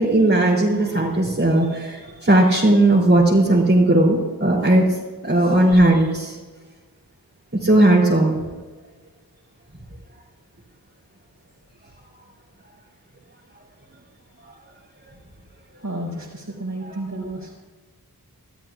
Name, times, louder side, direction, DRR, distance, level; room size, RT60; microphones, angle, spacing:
voice 1, 0.0-6.4 7.5-8.4 14.4-14.5 16.8-17.0, right 1 dB, 35° right, -7 dB, 3.1 m, -17 dB
voice 2, 15.7-17.6, right 1 dB, 60° right, -7 dB, 4.1 m, -32 dB
25.0 x 13.5 x 2.4 m, 1.3 s
wide cardioid pair, 60°, 37 cm